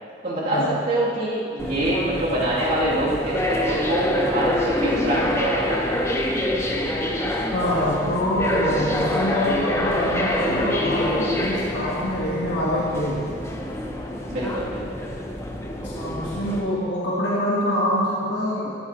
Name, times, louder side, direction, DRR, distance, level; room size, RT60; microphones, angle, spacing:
voice 1, 0.2-0.6 0.9-6.2 14.3-14.8, right 1 dB, 45° right, -9 dB, 2.7 m, -25 dB
sound 1, 1.6-16.6, left 1 dB, 15° left, 0.6 m, -26 dB
voice 2, 7.5-13.2 15.8-18.8, left 1 dB, 70° left, -7 dB, 1.5 m, -25 dB
14.0 x 9.3 x 3.0 m, 2.5 s
head